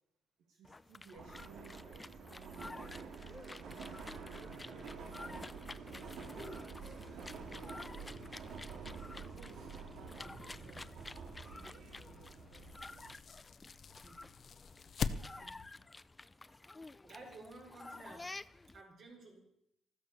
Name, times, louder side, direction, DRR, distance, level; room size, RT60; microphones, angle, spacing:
voice 1, 0.4-2.9 3.3-5.5 5.9-8.1 9.2-10.9 11.3-13.1, right 4 dB, 90° right, 1 dB, 2.6 m, -60 dB
sound 1, 0.6-18.8, left 2 dB, 15° left, 0.5 m, -51 dB
Subway metro underground, 1.2-13.2, right 5 dB, 65° right, 2.5 m, -48 dB
sound 2, 10.1-15.7, left 6 dB, 50° left, 0.9 m, -45 dB
voice 2, 17.0-18.3 18.7-19.4, right 2 dB, 50° right, 1 dB, 5.1 m, -53 dB
14.0 x 13.5 x 7.0 m, 0.79 s
cardioid pair, 115°, 0 cm